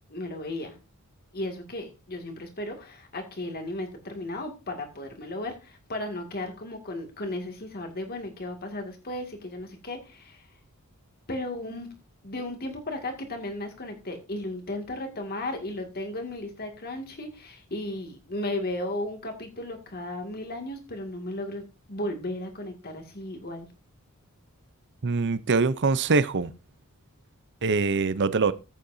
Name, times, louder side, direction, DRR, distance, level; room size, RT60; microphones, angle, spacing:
voice 1, 0.1-0.7 1.3-10.5 11.3-11.9 12.2-23.7, left 1 dB, 45° left, 2.2 m, -35 dB
voice 2, 25.0-26.5 27.6-28.5, right 4 dB, 50° right, 0.6 m, -23 dB
14.0 x 8.4 x 2.7 m
head